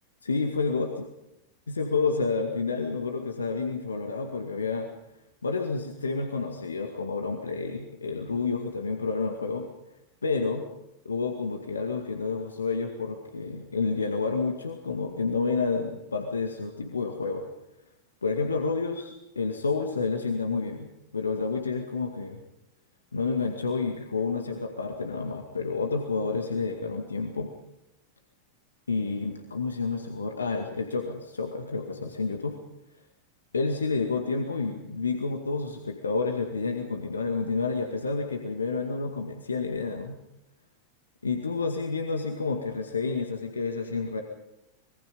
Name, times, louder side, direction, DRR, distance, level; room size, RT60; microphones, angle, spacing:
voice 1, 0.2-1.1 1.7-4.9 5.4-9.7 10.2-10.7 11.1-17.4 18.2-20.9 21.1-22.4 23.1-27.5 28.9-32.6 33.5-40.2 41.2-44.2, left 4 dB, 75° left, 3 dB, 2.1 m, -29 dB
26.0 x 22.5 x 5.4 m, 0.88 s
figure-of-eight pair, 90°, 0 cm